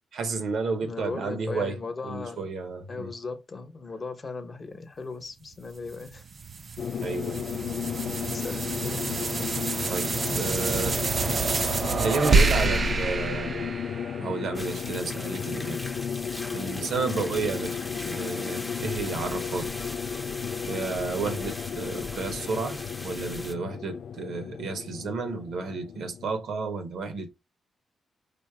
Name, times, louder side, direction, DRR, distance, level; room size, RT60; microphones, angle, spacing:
voice 1, 0.1-1.8 2.0-3.1 7.0-7.5 9.9-11.0 11.9-13.8 14.2-15.8 16.5-17.8 18.0-19.7 20.7-27.3, right 4 dB, 75° right, 1.0 m, -32 dB
voice 2, 0.8-2.5 2.9-6.2 8.3-9.3, left 4 dB, 30° left, 1.0 m, -37 dB
sound 1, 5.9-14.5, right 3 dB, 40° right, 0.4 m, -27 dB
sound 2, 6.8-26.3, left 7 dB, 70° left, 0.3 m, -34 dB
sound 3, 14.5-23.5, left 1 dB, 10° left, 0.7 m, -40 dB
5.1 x 2.1 x 4.7 m
cardioid pair, 110°, 0 cm